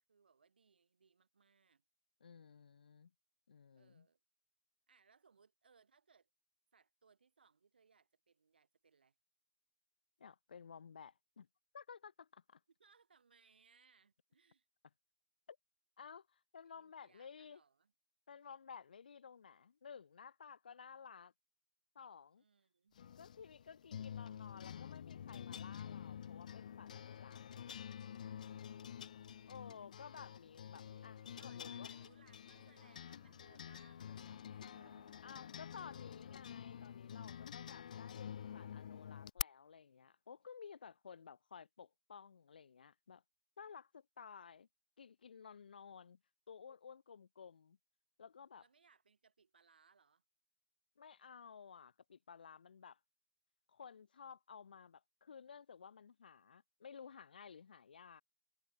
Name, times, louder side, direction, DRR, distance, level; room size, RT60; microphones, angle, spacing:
voice 1, 0.0-1.8 3.7-4.2 4.9-6.3 6.7-9.1 12.8-14.7 16.6-17.9 22.4-23.0 28.7-29.9 31.4-35.3 38.0-38.9 48.6-50.2, right 5 dB, 85° right, 4.7 m, -71 dB
voice 2, 2.2-3.1 3.5-4.1 10.2-11.5 11.7-12.6 15.5-15.6 16.0-17.6 18.3-21.3 22.0-22.4 23.2-27.4 29.5-32.0 35.2-43.2 43.6-44.7 45.0-46.2 46.5-47.8 48.2-48.6 51.0-53.0 53.7-58.2, left 6 dB, 70° left, 2.0 m, -55 dB
sound 1, 23.0-39.4, left 8 dB, 50° left, 0.3 m, -49 dB
Subway metro underground, 29.2-38.1, right 4 dB, 5° right, 4.7 m, -76 dB
hypercardioid pair, 170°, 5 cm